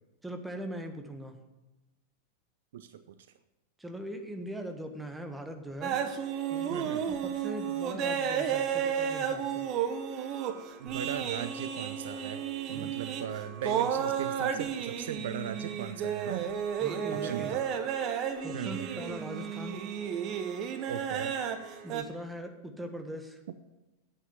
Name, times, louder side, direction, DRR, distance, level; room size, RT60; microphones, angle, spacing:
voice 1, 0.2-1.4 3.8-6.0 6.5-9.7 12.7-12.9 16.8-17.5 18.4-19.8 21.8-23.4, right 1 dB, 5° right, 6 dB, 1.5 m, -40 dB
voice 2, 2.7-3.2 6.7-7.0 10.8-16.5 17.1-17.7 18.5-19.1 20.9-21.4, right 9 dB, 60° right, 12 dB, 0.5 m, -38 dB
sound 1, 5.8-22.0, right 8 dB, 35° right, 1.1 m, -33 dB
9.0 x 8.7 x 7.4 m, 1.0 s
figure-of-eight pair, 90°, 0 cm